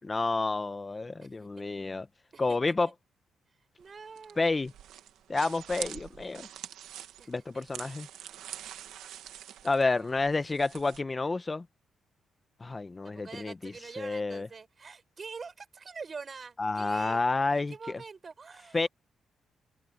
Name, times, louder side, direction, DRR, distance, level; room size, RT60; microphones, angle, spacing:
voice 1, 0.0-2.1 2.4-2.9 4.4-4.7 5.3-6.5 7.3-8.1 9.6-11.7 12.6-14.5 16.6-18.0 18.7-18.9, left 3 dB, 30° left, 1.4 m, -30 dB
voice 2, 1.2-1.6 2.3-2.6 3.8-4.4 7.2-7.6 7.9-8.0 9.9-10.7 13.0-17.2 17.5-18.9, right 5 dB, 45° right, 7.5 m, -45 dB
sound 1, 3.8-11.0, right 11 dB, 90° right, 1.6 m, -45 dB
cardioid pair, 75°, 0 cm